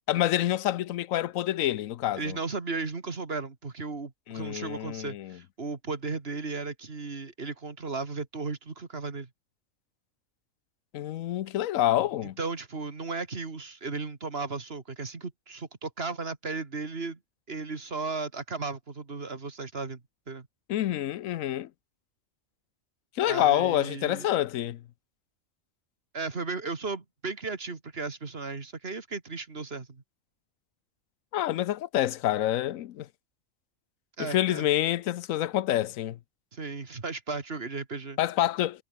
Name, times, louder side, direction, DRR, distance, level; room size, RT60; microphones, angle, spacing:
voice 1, 0.1-2.4 4.3-5.4 10.9-12.4 20.7-21.7 23.2-24.8 31.3-33.1 34.2-36.2 38.2-38.8, left 13 dB, 90° left, 1.1 m, -27 dB
voice 2, 2.2-9.3 12.2-17.2 17.5-20.0 20.3-20.5 23.3-24.3 26.1-30.0 34.2-34.7 36.5-38.2, right 4 dB, 50° right, 2.3 m, -35 dB
omnidirectional pair, 1.3 m